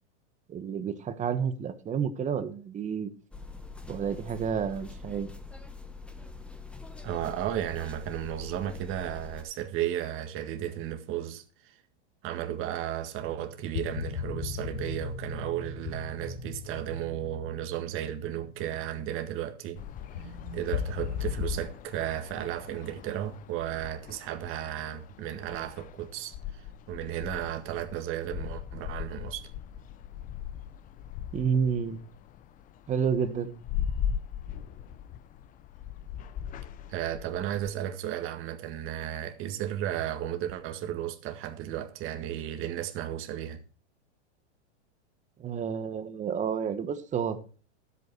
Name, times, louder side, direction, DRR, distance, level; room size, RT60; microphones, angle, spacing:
voice 1, 0.5-3.1 3.9-5.3 31.3-32.0 32.9-33.5 45.4-47.6, right 7 dB, 20° right, 1.2 m, -30 dB
sound 1, 3.3-9.4, left 4 dB, 5° left, 0.9 m, -44 dB
voice 2, 7.0-11.8 12.2-19.8 20.2-29.5 36.9-43.6, right 11 dB, 35° right, 1.7 m, -34 dB
sound 2, 13.2-21.6, left 6 dB, 75° left, 2.7 m, -37 dB
sound 3, 19.8-37.7, left 9 dB, 25° left, 0.6 m, -40 dB
12.5 x 8.3 x 4.6 m
hypercardioid pair, 130°, 35 cm